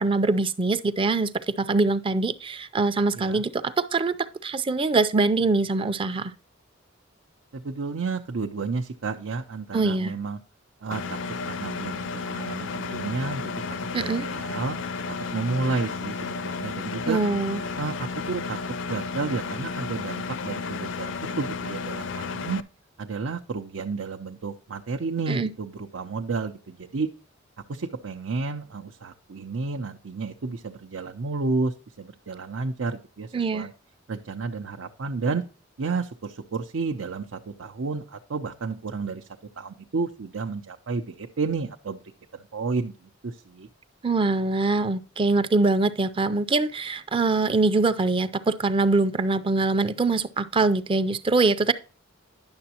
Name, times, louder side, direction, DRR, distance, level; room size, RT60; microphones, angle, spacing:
voice 1, 0.0-4.2 4.4-6.3 9.7-10.1 13.9-14.3 17.1-17.6 25.3-25.5 33.3-33.7 44.0-51.7, right 3 dB, 25° right, 0.4 m, -23 dB
voice 2, 7.5-10.4 10.8-11.2 11.5-13.6 14.0-14.8 15.3-17.2 17.8-18.6 18.8-22.6 23.0-27.1 27.7-33.7 34.1-35.4 35.8-39.3 39.6-42.0 42.3-43.7, right 4 dB, 85° right, 0.6 m, -31 dB
Engine, 10.9-22.6, left 4 dB, 65° left, 0.5 m, -32 dB
10.5 x 6.9 x 2.8 m
head